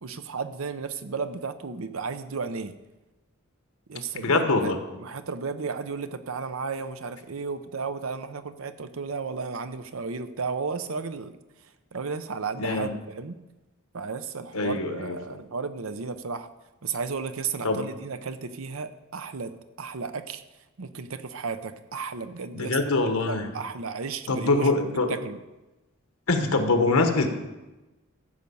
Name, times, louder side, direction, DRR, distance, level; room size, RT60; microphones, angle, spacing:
voice 1, 0.0-2.8 3.9-4.7 5.0-11.4 11.9-13.4 13.9-16.5 16.8-20.4 20.8-22.8 23.3-24.7 25.1-25.4, right 5 dB, 70° right, 11 dB, 0.7 m, -33 dB
voice 2, 4.2-4.8 12.6-12.9 14.5-15.4 17.6-17.8 22.5-23.5 24.3-25.2 26.3-27.3, left 3 dB, 85° left, 6 dB, 1.3 m, -24 dB
13.5 x 5.3 x 7.0 m, 1.1 s
head